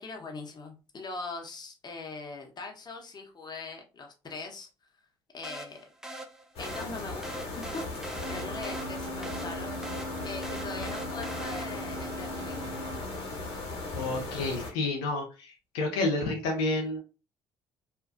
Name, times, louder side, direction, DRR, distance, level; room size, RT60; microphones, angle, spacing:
voice 1, 0.0-4.7 5.3-5.9 6.6-7.3 7.6-9.7 10.2-12.8, left 3 dB, 35° left, 3 dB, 0.8 m, -41 dB
sound 1, 5.4-12.0, right 1 dB, 5° right, 0.5 m, -43 dB
sound 2, 6.6-14.7, left 2 dB, 60° left, 1.0 m, -37 dB
Wind instrument woodwind instrument, 8.1-13.0, right 1 dB, 50° right, 0.7 m, -41 dB
voice 2, 13.9-17.0, left 2 dB, 80° left, 1 dB, 0.5 m, -30 dB
2.5 x 2.2 x 2.5 m, 0.32 s
hypercardioid pair, 55°, 12 cm